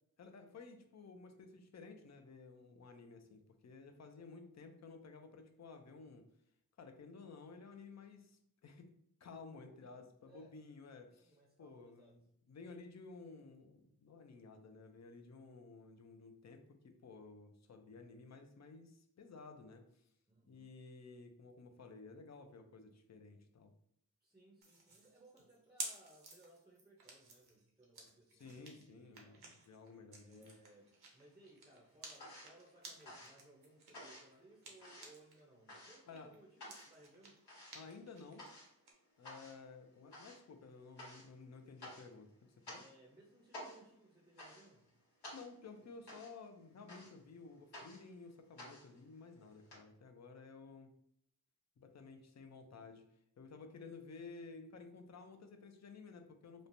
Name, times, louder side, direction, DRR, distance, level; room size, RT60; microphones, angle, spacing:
voice 1, 0.2-6.2 6.8-8.9 9.2-12.2 12.5-19.8 20.5-23.7 28.3-30.6 36.1-36.3 37.7-38.5 39.2-42.8 45.3-50.9 51.8-53.0 53.4-56.7, left 4 dB, 45° left, 6 dB, 0.5 m, -54 dB
voice 2, 9.6-10.6 11.1-12.2 20.3-20.7 24.2-29.5 30.2-37.4 42.7-44.9, right 1 dB, 10° right, -2 dB, 0.6 m, -64 dB
sound 1, 24.6-35.4 35.7-38.9, right 3 dB, 80° right, 0.7 m, -53 dB
sound 2, 30.4-31.2 31.5-49.8, left 1 dB, 85° left, 1.2 m, -55 dB
3.1 x 2.1 x 2.6 m, 0.74 s
wide cardioid pair, 60°, 38 cm